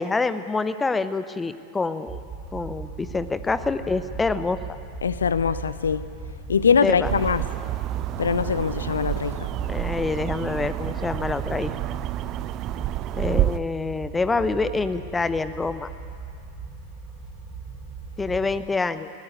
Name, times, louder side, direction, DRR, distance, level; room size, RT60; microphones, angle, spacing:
voice 1, 0.0-2.2 2.5-4.8 6.8-7.1 9.7-11.7 13.1-15.9 18.2-19.1, left 3 dB, 10° left, 13 dB, 0.9 m, -26 dB
sound 1, 2.1-18.6, right 4 dB, 10° right, 7.2 m, -38 dB
voice 2, 5.0-6.1 6.5-7.4 8.2-9.5, left 6 dB, 70° left, 15 dB, 0.7 m, -22 dB
sound 2, 7.0-13.6, right 15 dB, 35° right, 0.5 m, -29 dB
21.0 x 17.0 x 9.6 m, 2.4 s
figure-of-eight pair, 90°, 0 cm